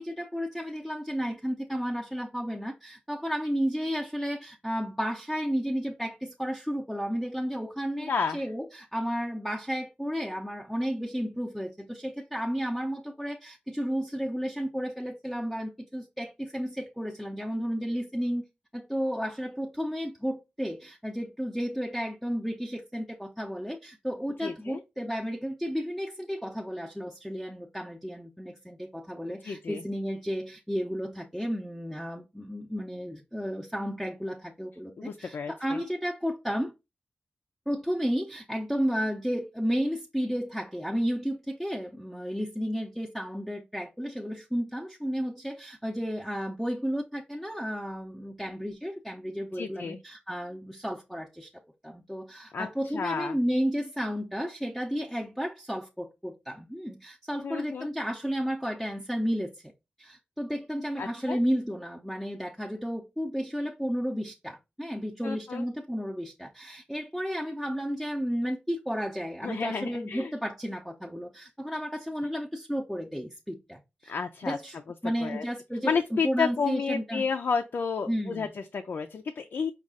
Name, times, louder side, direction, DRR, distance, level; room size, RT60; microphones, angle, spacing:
voice 1, 0.0-18.4 18.7-36.7 37.7-51.5 51.8-59.5 60.0-74.1 74.4-75.9 76.2-77.2 78.1-78.5, equal, ahead, 0.6 m, -32 dB
voice 2, 8.0-8.4 24.4-24.8 29.4-29.8 35.0-35.8 49.5-50.0 52.5-53.4 57.4-57.9 61.0-61.4 65.2-65.6 69.4-70.3 74.1-74.6 75.2-75.5 75.8-79.7, left 5 dB, 80° left, 0.5 m, -31 dB
5.3 x 2.4 x 3.6 m
wide cardioid pair, 105°, 4 cm